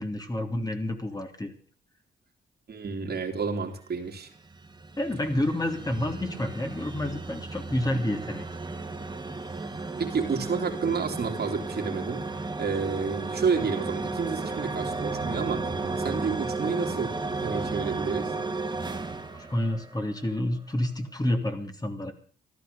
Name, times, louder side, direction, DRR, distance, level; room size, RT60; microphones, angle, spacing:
voice 1, 0.0-1.5 5.0-8.4 19.3-22.1, left 1 dB, 20° left, 4 dB, 3.0 m, -29 dB
voice 2, 2.7-4.3 10.0-15.7 16.0-18.3, right 5 dB, 55° right, 3 dB, 3.2 m, -30 dB
sound 1, 4.1-20.3, right 3 dB, 20° right, 2.6 m, -34 dB
14.5 x 12.0 x 6.8 m, 0.43 s
cardioid pair, 75°, 20 cm